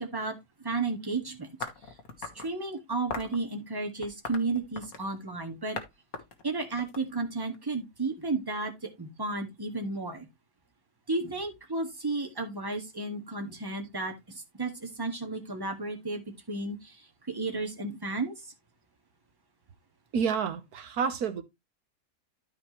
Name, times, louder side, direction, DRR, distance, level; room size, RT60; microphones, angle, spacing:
voice 1, 0.0-1.5 1.9-5.8 6.4-10.3 11.1-18.5, right 3 dB, 15° right, 1.8 m, -33 dB
sound 1, 1.6-2.5 3.1-3.4 4.0-5.1 5.8-5.9 6.1-7.6, left 4 dB, 75° left, 1.9 m, -39 dB
voice 2, 20.1-21.4, right 6 dB, 85° right, 1.6 m, -29 dB
13.0 x 5.0 x 3.1 m
omnidirectional pair, 1.6 m